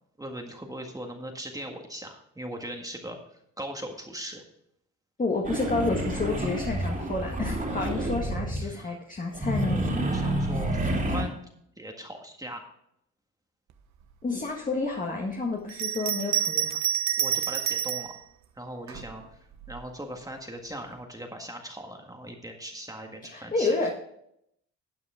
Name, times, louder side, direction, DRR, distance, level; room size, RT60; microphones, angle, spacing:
voice 1, 0.2-3.2 3.6-4.4 8.0-8.1 8.6-8.9 10.0-10.8 11.1-11.4 11.8-12.6 17.2-18.1 18.6-19.4 19.7-23.7, right 1 dB, 10° right, 2 dB, 1.7 m, -39 dB
voice 2, 5.2-9.9 14.2-16.8 23.3-23.9, left 3 dB, 25° left, 0 dB, 1.8 m, -30 dB
sound 1, 5.5-8.7 9.3-11.2, right 1 dB, 25° right, 2.8 m, -29 dB
Bell, 15.7-18.1 18.9-19.8, right 10 dB, 65° right, 1.2 m, -28 dB
13.0 x 8.5 x 3.7 m, 0.74 s
cardioid pair, 90°, 30 cm